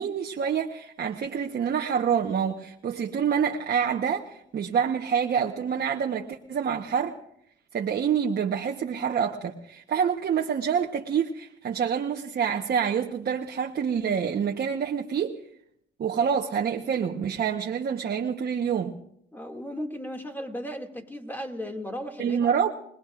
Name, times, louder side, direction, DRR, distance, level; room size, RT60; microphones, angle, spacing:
voice 1, 0.0-7.2 7.7-15.4 16.0-18.9 22.2-22.7, right 7 dB, 50° right, 1 dB, 1.1 m, -27 dB
voice 2, 19.3-22.6, equal, 10° left, 3 dB, 2.3 m, -36 dB
28.0 x 19.5 x 2.5 m, 0.72 s
cardioid pair, 90°, 20 cm